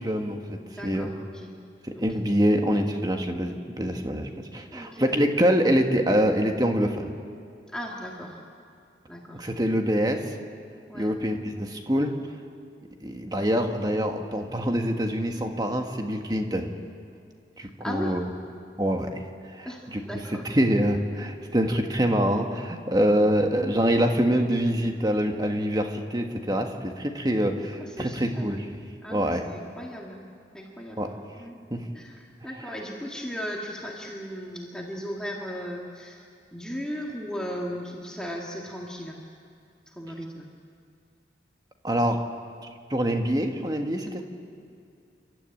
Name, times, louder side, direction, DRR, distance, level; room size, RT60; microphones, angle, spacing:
voice 1, 0.0-1.1 1.8-7.1 9.4-10.4 10.9-12.2 13.0-16.7 17.6-18.2 18.8-20.0 20.5-28.7 29.1-29.4 31.0-31.1 31.7-31.8 41.8-42.2 42.9-44.2, equal, 20° right, 4 dB, 1.6 m, -25 dB
voice 2, 0.8-1.6 1.9-2.2 4.7-5.1 7.7-8.4 9.1-9.4 10.9-11.1 17.6-18.2 19.6-20.4 21.4-21.5 27.8-28.5 29.0-30.2 30.5-31.6 31.9-39.2 39.9-40.5, equal, 5° left, -2 dB, 2.0 m, -37 dB
29.0 x 13.0 x 9.0 m, 2.4 s
head